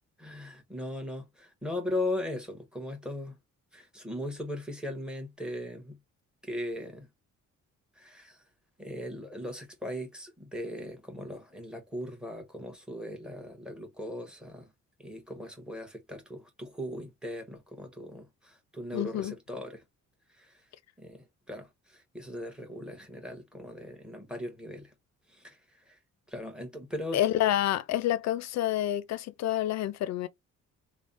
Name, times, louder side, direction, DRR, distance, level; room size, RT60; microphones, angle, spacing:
voice 1, 0.2-3.4 3.7-6.0 6.4-7.1 8.0-8.4 8.8-14.7 15.0-19.8 20.4-20.6 21.0-24.9 25.3-26.0 26.3-27.2, left 1 dB, 5° right, 1.2 m, -38 dB
voice 2, 18.9-19.3 27.1-30.3, left 12 dB, 60° left, 0.5 m, -28 dB
3.2 x 2.1 x 2.6 m
cardioid pair, 90°, 30 cm